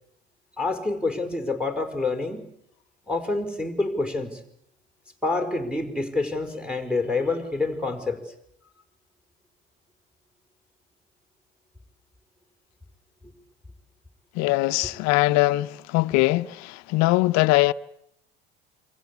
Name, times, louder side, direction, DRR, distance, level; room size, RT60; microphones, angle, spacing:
voice 1, 0.6-2.5 3.1-4.4 5.2-8.2, left 3 dB, 5° right, 4.9 m, -27 dB
voice 2, 14.3-17.7, left 20 dB, 60° left, 1.0 m, -21 dB
28.0 x 24.0 x 8.4 m
hypercardioid pair, 75°, 30 cm